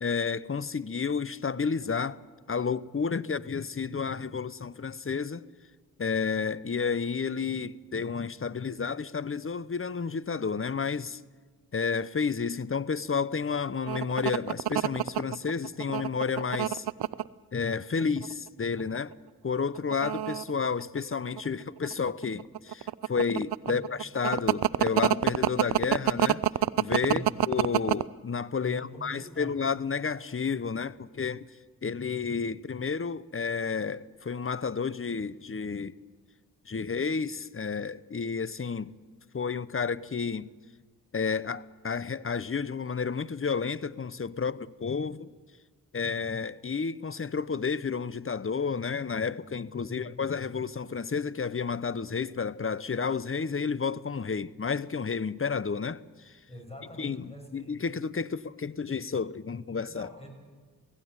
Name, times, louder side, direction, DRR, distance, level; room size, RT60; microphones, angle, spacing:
voice 1, 0.0-2.2 2.5-5.5 6.0-11.2 11.7-16.9 17.5-19.1 19.4-26.4 26.8-31.5 31.8-36.0 36.7-38.9 39.3-40.5 41.1-45.3 45.9-56.4 57.0-60.1, left 5 dB, 35° left, 0.8 m, -31 dB
sound 1, 13.9-17.3 18.0-18.5 18.8-19.0 19.8-21.5 21.8-28.0, right 12 dB, 85° right, 0.5 m, -26 dB
voice 2, 27.1-27.4 28.6-29.7 49.9-50.3 56.5-57.9 59.9-60.3, equal, 15° left, 6.7 m, -44 dB
17.0 x 16.0 x 9.6 m
cardioid pair, 45°, 38 cm